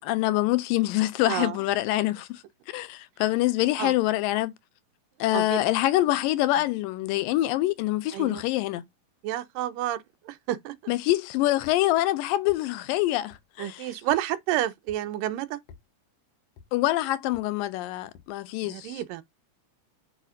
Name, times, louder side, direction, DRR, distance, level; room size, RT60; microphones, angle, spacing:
voice 1, 0.0-2.4 2.7-4.5 5.2-8.8 10.9-13.9 16.7-19.0, left 16 dB, 90° left, 2.4 m, -25 dB
voice 2, 1.3-1.6 3.8-3.9 5.3-5.6 8.1-8.4 9.2-10.9 13.6-15.6 18.6-19.2, right 13 dB, 80° right, 2.4 m, -30 dB
sound 1, 11.6-11.8 12.5-12.6 13.3-13.4 14.1-14.2 14.9-15.0 15.7-15.8 16.6-16.7 17.3-17.5 18.1-18.3, left 6 dB, 70° left, 1.5 m, -51 dB
9.2 x 4.9 x 2.5 m
omnidirectional pair, 3.9 m